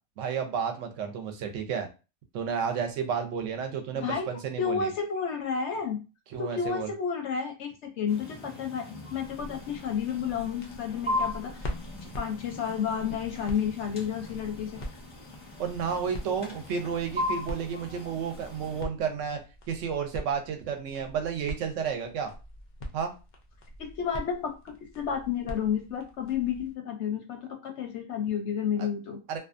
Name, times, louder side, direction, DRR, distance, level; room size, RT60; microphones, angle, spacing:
voice 1, 0.2-1.9 2.3-4.9 6.3-6.9 15.6-19.4 19.7-22.3 22.9-23.1 28.8-28.9 29.3-29.4, right 7 dB, 70° right, 5 dB, 0.9 m, -31 dB
voice 2, 3.9-4.3 4.6-6.0 6.4-11.7 12.0-14.8 23.8-29.2, left 7 dB, 65° left, 3 dB, 0.7 m, -31 dB
sound 1, 8.1-18.8, left 2 dB, 5° right, 0.6 m, -38 dB
sound 2, 9.2-26.7, equal, 85° left, 0.4 m, -44 dB
2.5 x 2.3 x 2.4 m, 0.30 s
omnidirectional pair, 1.5 m